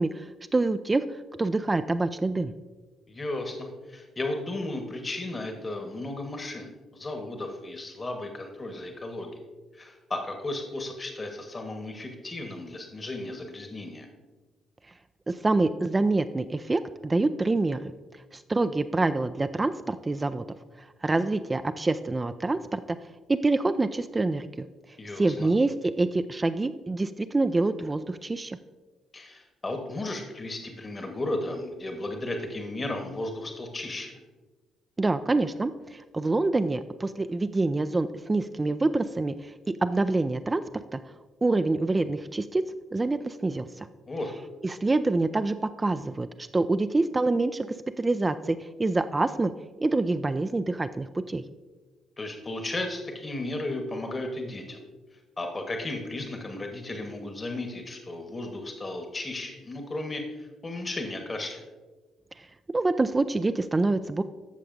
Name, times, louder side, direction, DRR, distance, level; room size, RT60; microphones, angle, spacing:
voice 1, 0.0-2.5 15.3-20.5 20.8-23.0 23.3-24.7 25.2-28.6 35.0-41.0 41.4-42.6 42.9-43.9 44.6-47.7 48.0-49.5 49.8-51.4 62.4-62.5 62.7-64.2, right 2 dB, 25° right, 10 dB, 0.3 m, -26 dB
voice 2, 3.1-9.4 9.7-14.1 25.0-25.5 29.1-34.1 44.1-44.3 52.2-54.8 55.4-61.7, left 2 dB, 30° left, 4 dB, 1.1 m, -34 dB
13.5 x 6.5 x 2.6 m, 1.3 s
figure-of-eight pair, 45°, 0 cm